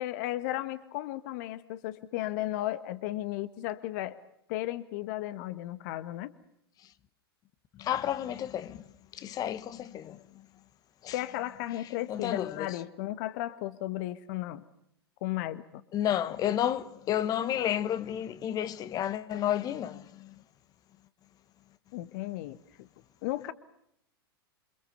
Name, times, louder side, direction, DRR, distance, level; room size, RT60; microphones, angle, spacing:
voice 1, 0.0-4.2 4.5-6.3 11.1-14.6 15.2-15.8 21.9-22.9 23.2-23.5, left 15 dB, 50° left, 1.3 m, -35 dB
voice 2, 7.8-8.8 9.2-10.1 11.0-11.1 12.1-12.4 15.9-20.0, left 11 dB, 30° left, 1.5 m, -31 dB
28.5 x 26.0 x 7.0 m
figure-of-eight pair, 100°, 13 cm